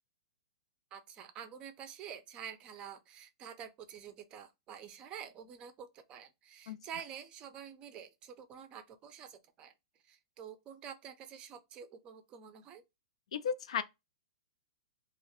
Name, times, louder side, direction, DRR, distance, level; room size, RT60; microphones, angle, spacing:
voice 1, 0.9-9.7 10.0-12.8, right 8 dB, 30° right, 0.4 m, -48 dB
voice 2, 13.3-13.8, left 7 dB, 75° left, 0.4 m, -34 dB
2.2 x 2.0 x 2.9 m
hypercardioid pair, 135°, 3 cm